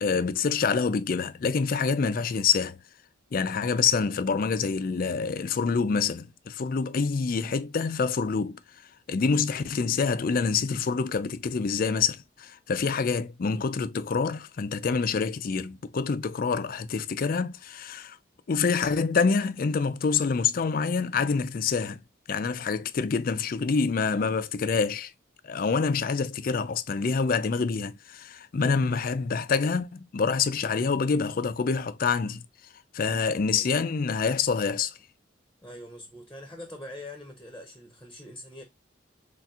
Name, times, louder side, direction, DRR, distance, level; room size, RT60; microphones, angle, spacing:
voice 1, 0.0-2.8 3.3-8.6 9.1-18.2 18.5-22.0 22.3-25.1 25.4-32.4 32.9-35.0, left 5 dB, 45° left, 0.4 m, -26 dB
voice 2, 35.6-38.6, left 1 dB, 5° left, 0.8 m, -43 dB
4.2 x 3.4 x 2.3 m
head